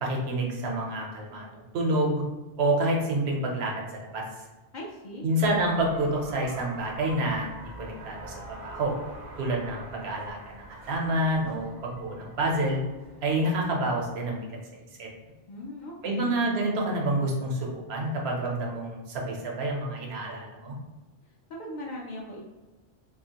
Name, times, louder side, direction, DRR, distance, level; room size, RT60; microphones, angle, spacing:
voice 1, 0.0-2.2 2.6-4.2 5.2-8.9 9.4-12.8 13.2-14.4 15.0-15.1 16.0-20.7, right 1 dB, 80° right, -1 dB, 0.9 m, -28 dB
voice 2, 4.7-5.3 15.5-16.3 21.6-22.4, left 1 dB, 55° left, -2 dB, 0.5 m, -39 dB
sound 1, 5.4-14.0, right 1 dB, 55° right, 0.6 m, -45 dB
2.7 x 2.4 x 2.8 m, 1.1 s
omnidirectional pair, 1.1 m